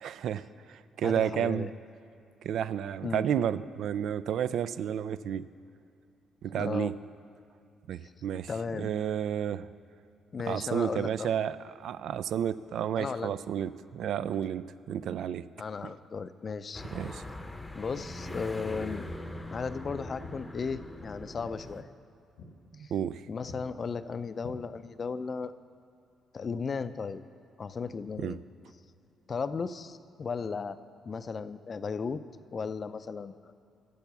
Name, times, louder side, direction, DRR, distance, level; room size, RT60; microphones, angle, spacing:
voice 1, 0.0-1.7 2.4-5.5 6.4-6.9 7.9-9.7 10.5-15.4 15.8-15.9 16.9-17.2 22.9-23.2 28.2-28.4, right 9 dB, 75° right, 15 dB, 0.3 m, -31 dB
voice 2, 1.0-1.7 3.0-3.3 6.5-6.9 8.5-8.9 10.3-11.3 13.0-13.3 15.6-16.8 17.7-19.1 19.5-21.9 22.8-22.9 23.3-25.5 26.3-27.2 27.6-28.4 29.3-30.8 31.1-32.2 32.5-33.5, left 5 dB, 40° left, 13 dB, 0.4 m, -35 dB
sound 1, 16.7-21.8, left 1 dB, 10° left, 0.7 m, -41 dB
Walk footsteps, 17.9-18.2 19.0-19.3 19.6-21.0 21.3-21.5 21.9-22.1 22.4-22.6 22.9-23.1 23.4-23.7 24.4-25.1, left 3 dB, 90° left, 1.3 m, -49 dB
10.5 x 7.1 x 6.8 m, 2.6 s
cardioid pair, 90°, 0 cm